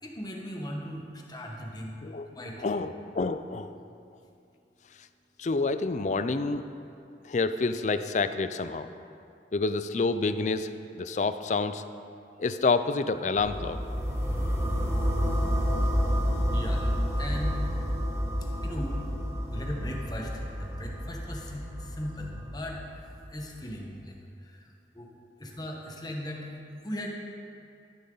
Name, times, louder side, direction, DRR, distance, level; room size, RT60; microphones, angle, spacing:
voice 1, 0.0-1.9 2.3-2.6 16.5-17.7 18.6-19.0 19.5-22.8 23.3-24.7 24.9-25.1 25.4-27.1, left 1 dB, 20° left, 0 dB, 1.3 m, -38 dB
voice 2, 2.6-3.7 5.4-6.7 7.2-8.9 9.5-10.7 11.0-11.8 12.4-13.8, left 3 dB, 40° left, 11 dB, 0.4 m, -28 dB
sound 1, 13.4-23.3, equal, 15° right, 1.2 m, -29 dB
13.0 x 10.5 x 3.9 m, 2.5 s
head